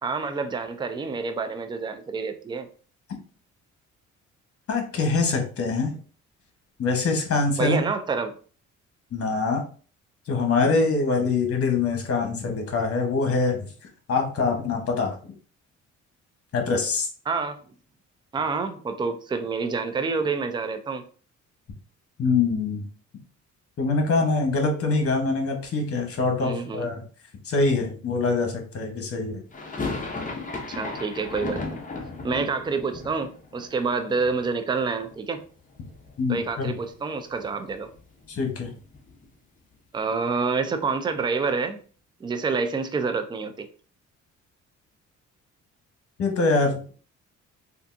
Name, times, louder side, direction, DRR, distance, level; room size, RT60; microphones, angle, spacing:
voice 1, 0.0-2.7 7.6-8.3 17.3-17.6 18.3-21.0 26.4-26.9 30.7-31.8 32.2-35.4 36.3-37.9 39.9-41.8 42.2-43.7, right 4 dB, 15° right, 8 dB, 0.4 m, -28 dB
voice 2, 4.7-5.9 6.8-7.8 9.1-9.6 10.3-13.7 14.1-15.2 16.5-17.1 22.2-22.8 23.8-27.0 27.4-29.4 36.2-36.8 38.3-38.7 46.2-46.9, left 3 dB, 50° left, 3 dB, 1.1 m, -24 dB
sound 1, 29.5-35.5 35.7-36.6 36.8-36.9 37.2-39.4, left 3 dB, 25° left, 0.7 m, -36 dB
3.5 x 2.5 x 2.6 m, 0.40 s
cardioid pair, 90°, 30 cm